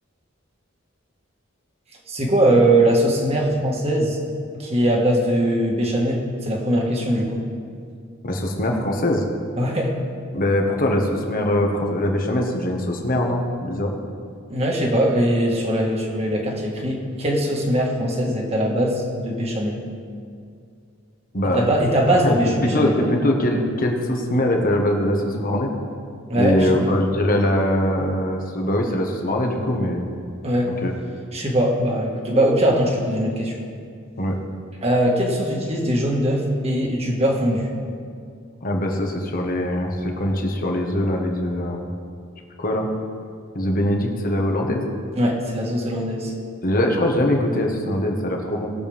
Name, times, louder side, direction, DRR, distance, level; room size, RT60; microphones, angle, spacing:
voice 1, 2.1-4.2 4.6-7.4 9.6-9.9 14.5-19.8 21.5-23.1 26.3-26.9 30.4-30.7 31.3-33.6 34.8-37.7 45.2-46.3, right 1 dB, 30° right, -1 dB, 1.7 m, -21 dB
voice 2, 8.2-9.2 10.3-13.9 21.3-21.6 22.2-25.7 26.3-30.1 30.8-30.9 34.2-34.4 38.6-41.9 42.6-42.9 43.5-44.8 46.6-48.7, left 1 dB, 45° left, 2 dB, 1.4 m, -22 dB
19.5 x 7.0 x 3.5 m, 2.3 s
head